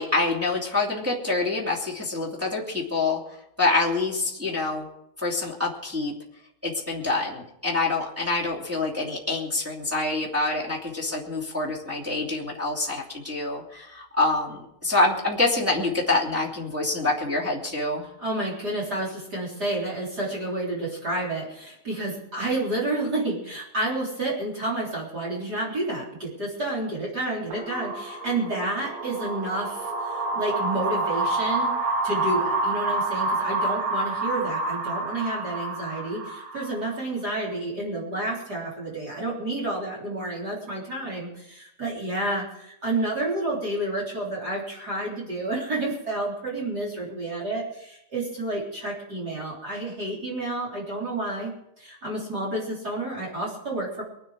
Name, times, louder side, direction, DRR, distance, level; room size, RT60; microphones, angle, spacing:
voice 1, 0.0-3.2 3.6-4.9 5.2-6.1 6.6-18.1, left 3 dB, 10° right, -6 dB, 0.9 m, -26 dB
voice 2, 18.2-31.7 32.0-54.0, right 2 dB, 25° right, -3 dB, 3.2 m, -30 dB
sound 1, 27.5-37.0, right 2 dB, 80° right, 4.7 m, -28 dB
24.0 x 9.2 x 4.8 m, 0.79 s
omnidirectional pair, 5.6 m